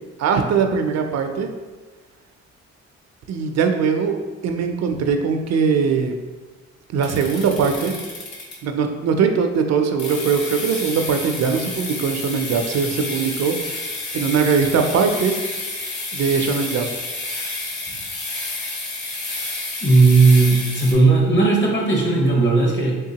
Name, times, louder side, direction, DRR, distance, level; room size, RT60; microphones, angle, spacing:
voice 1, 0.2-1.5 3.3-4.2 4.4-6.1 6.9-7.9 8.6-15.3 16.1-16.9, right 6 dB, 60° right, 5 dB, 0.5 m, -21 dB
sound 1, 7.0-8.8 10.0-20.9, left 2 dB, 70° left, 1.0 m, -30 dB
voice 2, 19.8-23.0, right 3 dB, 40° left, -1 dB, 1.0 m, -16 dB
3.6 x 3.4 x 2.8 m, 1.3 s
cardioid pair, 90°, 30 cm